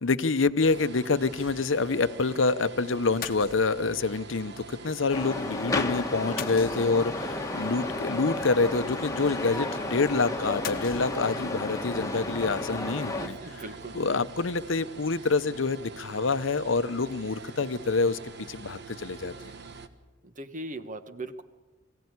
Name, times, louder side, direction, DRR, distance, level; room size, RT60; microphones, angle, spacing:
voice 1, 0.0-13.4 13.9-19.5, left 4 dB, 75° left, 13 dB, 0.8 m, -27 dB
sound 1, 0.6-19.9, right 4 dB, 60° right, 1.4 m, -45 dB
sound 2, 1.3-1.9 2.2-2.3 3.2-4.1 6.4-7.2 10.6-11.6, left 8 dB, 50° left, 1.0 m, -40 dB
sound 3, 5.1-13.3, left 2 dB, 15° left, 1.4 m, -32 dB
voice 2, 13.2-14.1 20.2-21.4, right 2 dB, 40° right, 10 dB, 1.2 m, -39 dB
23.5 x 16.0 x 9.6 m, 1.3 s
head